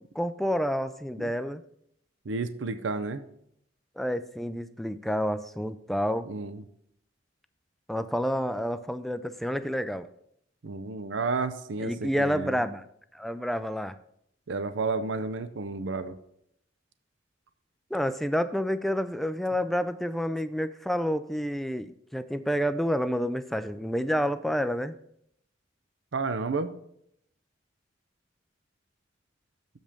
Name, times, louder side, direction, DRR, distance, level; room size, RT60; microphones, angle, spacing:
voice 1, 0.2-1.6 4.0-6.3 7.9-10.1 11.8-12.8 13.1-13.9 17.9-24.9, equal, ahead, 11 dB, 0.3 m, -29 dB
voice 2, 2.3-3.2 6.3-6.6 10.6-12.6 14.5-16.2 26.1-26.7, right 3 dB, 85° right, 11 dB, 0.6 m, -31 dB
7.3 x 5.3 x 6.5 m, 0.72 s
head